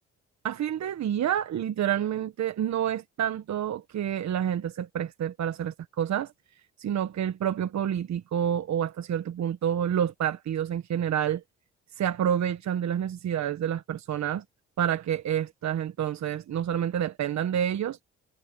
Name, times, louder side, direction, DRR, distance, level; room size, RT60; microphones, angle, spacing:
voice 1, 0.4-6.3 6.8-11.4 12.0-14.4 14.8-18.0, right 9 dB, 60° right, 1.4 m, -28 dB
supercardioid pair, 70°, 31 cm